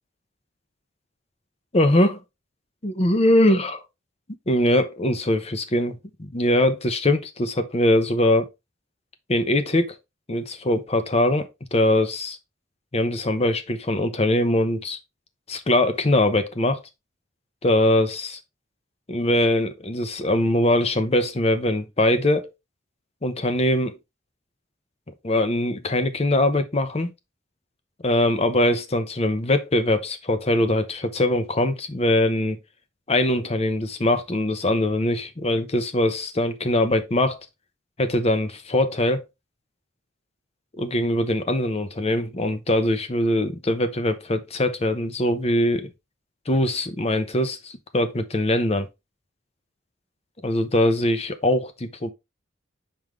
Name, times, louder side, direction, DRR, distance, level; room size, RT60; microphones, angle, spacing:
voice 1, 1.7-2.2 2.8-3.8 4.5-8.5 9.3-10.0 10.3-12.4 12.9-15.0 15.5-16.8 17.6-18.4 19.1-22.5 23.2-24.0 25.2-27.1 28.0-32.6 33.1-37.4 38.0-39.2 40.8-45.9 46.5-48.9 50.4-52.1, left 1 dB, 35° left, 0.8 m, -22 dB
5.6 x 5.2 x 3.2 m
head